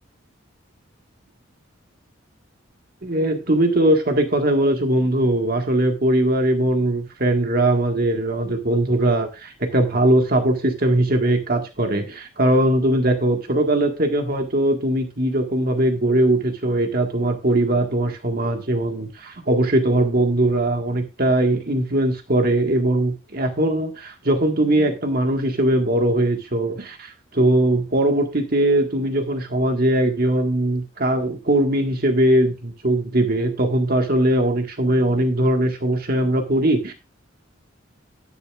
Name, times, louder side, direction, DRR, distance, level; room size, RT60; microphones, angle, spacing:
voice 1, 3.0-36.9, right 1 dB, 50° right, 4 dB, 1.8 m, -20 dB
11.0 x 10.5 x 2.5 m, 0.28 s
head